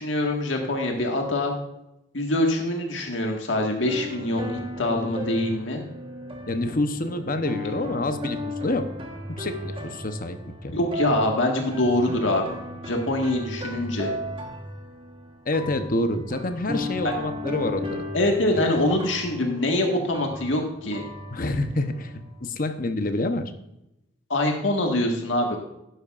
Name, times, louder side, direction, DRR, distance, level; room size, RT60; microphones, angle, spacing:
voice 1, 0.0-1.5 2.1-5.8 10.7-12.4 12.9-14.1 18.1-21.0 24.3-25.6, left 1 dB, 80° left, 1 dB, 1.7 m, -24 dB
sound 1, 3.8-22.4, left 1 dB, 30° right, 1.4 m, -35 dB
voice 2, 6.5-8.9 9.3-10.7 15.5-18.0 18.5-18.7 21.3-23.5, left 2 dB, 45° left, 8 dB, 0.9 m, -27 dB
12.0 x 10.0 x 2.5 m, 0.86 s
head